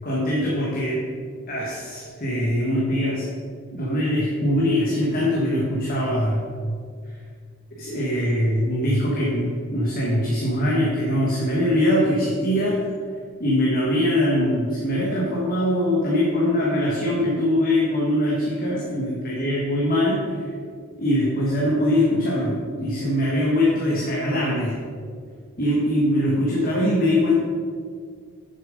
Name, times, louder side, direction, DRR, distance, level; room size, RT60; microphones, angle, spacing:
voice 1, 0.0-1.0 1.5-3.3 3.7-6.5 7.1-7.2 7.8-12.8 13.4-20.5 21.0-24.8 25.6-27.4, left 1 dB, 40° left, -4 dB, 1.3 m, -22 dB
7.3 x 6.7 x 5.2 m, 2.1 s
head